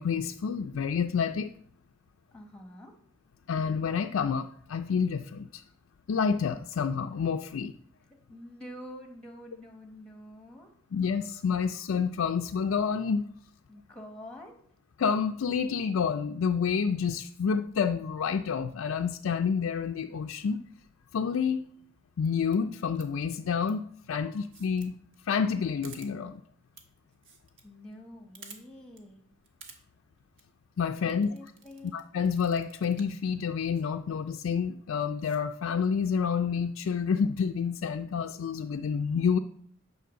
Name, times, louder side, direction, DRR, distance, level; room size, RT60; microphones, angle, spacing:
voice 1, 0.0-1.5 3.5-5.6 6.1-7.7 10.9-13.2 15.0-20.6 21.1-21.6 22.2-24.9 25.2-26.4 30.8-31.3 31.9-39.4, left 6 dB, 80° left, 4 dB, 0.4 m, -29 dB
voice 2, 2.3-2.9 8.1-10.7 13.7-14.6 27.6-29.2 31.0-31.9, equal, 5° left, 4 dB, 1.2 m, -47 dB
sound 1, 22.5-22.6 23.0-23.2 23.6-23.7 24.4-24.9 25.1-25.2 25.5-25.6 25.8-26.1 26.7-26.8 27.1-27.6 27.9-28.0 28.3-28.6 29.0-29.1 29.4-29.8 30.2-30.4 31.1-32.0 32.3-33.2 33.7-33.8 34.4-34.6 35.0-35.4, right 5 dB, 65° right, 1.3 m, -51 dB
9.3 x 4.4 x 6.3 m, 0.63 s
head